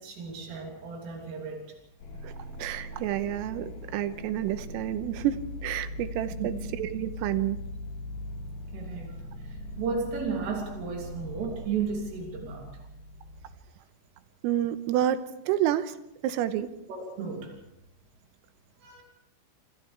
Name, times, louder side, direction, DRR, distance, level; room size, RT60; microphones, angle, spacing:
voice 1, 0.0-1.7 6.3-6.6 8.7-12.7 16.9-17.6 18.8-19.0, right 5 dB, 75° right, 0 dB, 5.6 m, -34 dB
sound 1, 2.0-13.6, left 1 dB, 75° left, 5.4 m, -40 dB
voice 2, 2.6-7.6 14.4-16.0 16.2-16.7, right 12 dB, 90° right, 11 dB, 3.6 m, -29 dB
28.0 x 26.5 x 3.5 m, 0.86 s
omnidirectional pair, 5.9 m